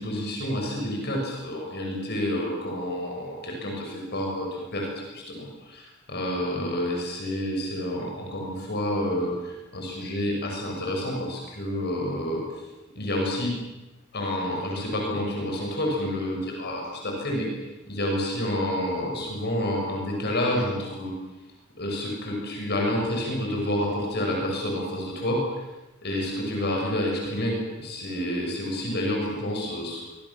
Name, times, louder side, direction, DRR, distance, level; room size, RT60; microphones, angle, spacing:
voice 1, 0.0-12.7 12.9-13.5 14.1-17.5 17.9-21.1 21.8-25.4 26.0-30.0, left 1 dB, 50° left, 0 dB, 6.9 m, -29 dB
25.5 x 24.0 x 7.4 m, 1.0 s
head